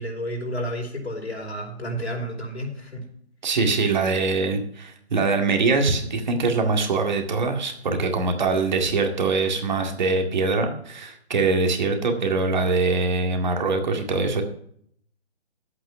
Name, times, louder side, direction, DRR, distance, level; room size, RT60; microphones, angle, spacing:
voice 1, 0.0-3.1, equal, 75° left, 1 dB, 5.1 m, -31 dB
voice 2, 3.4-14.4, right 3 dB, 45° right, 4 dB, 2.1 m, -23 dB
11.5 x 8.6 x 5.7 m, 0.66 s
figure-of-eight pair, 150°, 33 cm